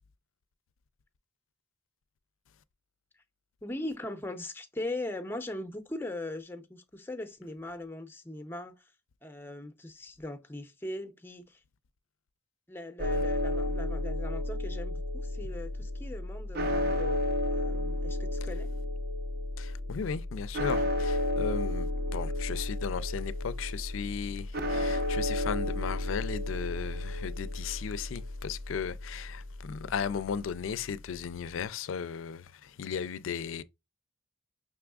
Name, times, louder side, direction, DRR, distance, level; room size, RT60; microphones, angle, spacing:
voice 1, 3.6-8.9 9.2-11.6 12.7-18.7, left 1 dB, 10° left, 0.6 m, -40 dB
sound 1, 13.0-30.9, left 1 dB, 50° right, 0.6 m, -32 dB
voice 2, 19.6-33.6, left 7 dB, 80° left, 0.4 m, -36 dB
5.4 x 3.4 x 2.3 m
head